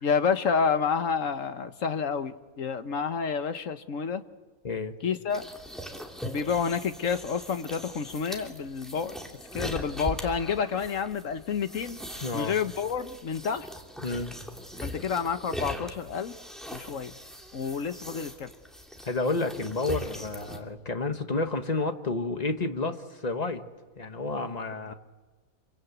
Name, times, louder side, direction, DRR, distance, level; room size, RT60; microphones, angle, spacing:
voice 1, 0.0-4.2 5.0-5.4 6.2-9.2 9.5-12.0 12.3-13.7 14.8-16.4 16.7-17.1 17.5-18.5, left 6 dB, 60° left, 9 dB, 1.5 m, -29 dB
voice 2, 4.6-4.9 12.2-12.5 14.0-14.4 19.0-23.6 24.0-24.9, left 3 dB, 30° left, 7 dB, 1.5 m, -30 dB
sound 1, 5.3-20.6, equal, ahead, 3.1 m, -40 dB
27.5 x 24.5 x 8.3 m, 1.3 s
omnidirectional pair, 1.6 m